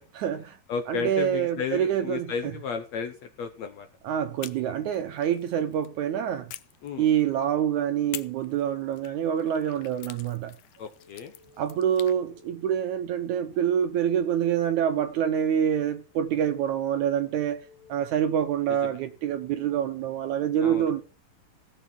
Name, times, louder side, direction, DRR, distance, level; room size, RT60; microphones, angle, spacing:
voice 1, 0.1-0.6 0.9-2.5 4.0-6.5 7.0-10.6 11.6-21.0, right 9 dB, 75° right, 1.8 m, -26 dB
voice 2, 0.7-3.9 6.8-7.1 10.8-11.3 18.8-19.0 20.6-20.9, left 6 dB, 70° left, 1.7 m, -33 dB
sound 1, 4.4-5.9 6.5-7.5 8.1-12.2, left 14 dB, 90° left, 1.6 m, -46 dB
sound 2, 10.7-12.6 13.5-15.5 16.4-18.3, left 4 dB, 15° left, 5.6 m, -56 dB
17.0 x 6.8 x 6.0 m
omnidirectional pair, 4.2 m